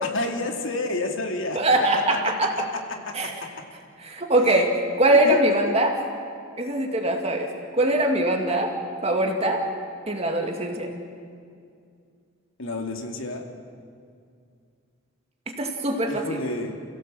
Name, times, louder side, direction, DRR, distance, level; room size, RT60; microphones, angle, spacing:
voice 1, 0.0-1.6 1.9-3.5 4.5-4.6 5.2-5.8 12.6-13.4 16.1-16.7, left 2 dB, 70° left, 3 dB, 2.6 m, -30 dB
voice 2, 1.5-2.5 3.1-3.3 4.0-6.0 6.6-7.5 7.8-8.7 9.0-9.6 10.1-10.9 15.6-16.4, right 1 dB, 30° right, 3 dB, 2.4 m, -22 dB
29.0 x 16.5 x 7.8 m, 2.3 s
head